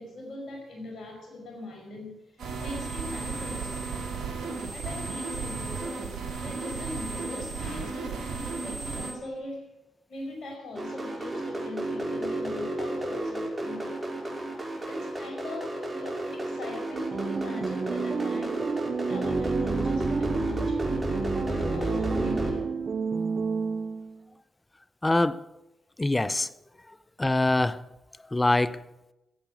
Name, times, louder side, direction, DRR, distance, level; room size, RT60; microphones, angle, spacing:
voice 1, 0.0-2.2 2.6-4.0 4.7-9.7 10.1-14.2 14.9-18.7 19.1-21.1 21.5-22.7, left 1 dB, 65° left, 5.3 m, -40 dB
sound 1, 2.4-9.1, right 4 dB, 70° right, 2.5 m, -34 dB
sound 2, 10.8-22.5, right 2 dB, 30° right, 5.5 m, -31 dB
sound 3, 16.9-24.2, right 5 dB, 50° right, 0.5 m, -31 dB
voice 2, 25.0-25.4 26.0-26.5 27.2-27.8 28.3-28.8, left 2 dB, 20° left, 0.7 m, -24 dB
15.0 x 8.4 x 8.2 m
hypercardioid pair, 45°, 0 cm